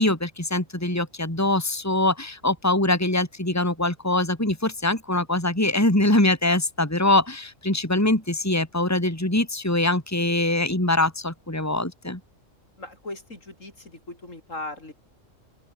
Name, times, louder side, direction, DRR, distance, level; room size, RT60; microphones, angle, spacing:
voice 1, 0.0-12.2, left 1 dB, 10° left, 3.5 m, -23 dB
voice 2, 12.8-14.9, left 2 dB, 70° left, 6.0 m, -38 dB
open air
omnidirectional pair, 1.4 m